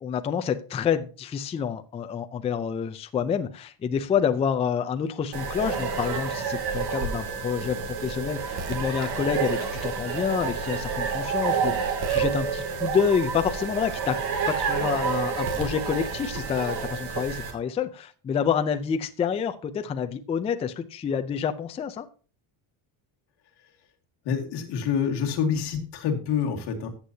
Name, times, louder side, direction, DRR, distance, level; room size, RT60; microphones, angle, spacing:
voice 1, 0.0-14.2 14.5-22.1, left 7 dB, 15° left, 9 dB, 0.3 m, -28 dB
sound 1, 5.3-17.5, right 6 dB, 50° right, 2.5 m, -29 dB
voice 2, 24.2-26.9, left 7 dB, 55° left, 2 dB, 2.2 m, -27 dB
14.0 x 8.3 x 2.7 m, 0.38 s
cardioid pair, 180°, 47 cm